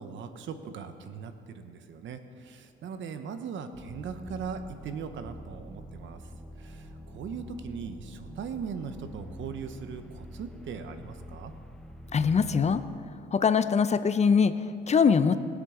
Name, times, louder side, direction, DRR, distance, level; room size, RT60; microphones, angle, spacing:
voice 1, 0.0-6.2 6.6-11.5, right 6 dB, 70° right, 9 dB, 0.9 m, -39 dB
sound 1, 3.7-13.0, equal, 5° left, 0.8 m, -46 dB
voice 2, 12.1-12.8 13.3-14.5 14.9-15.4, left 6 dB, 35° left, 12 dB, 0.5 m, -22 dB
20.0 x 7.5 x 3.8 m, 2.3 s
cardioid pair, 90°, 20 cm